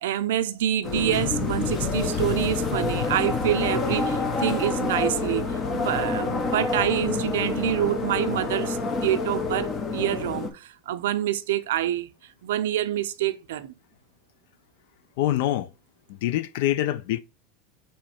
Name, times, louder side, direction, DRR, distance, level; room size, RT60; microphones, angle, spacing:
voice 1, 0.0-12.1 12.4-13.7, right 12 dB, 85° right, 0.4 m, -27 dB
sound 1, 0.8-10.5, left 4 dB, 30° left, 0.8 m, -27 dB
voice 2, 15.2-15.7 16.1-17.2, left 13 dB, 70° left, 0.4 m, -25 dB
3.7 x 3.0 x 4.2 m
supercardioid pair, 135°, 0 cm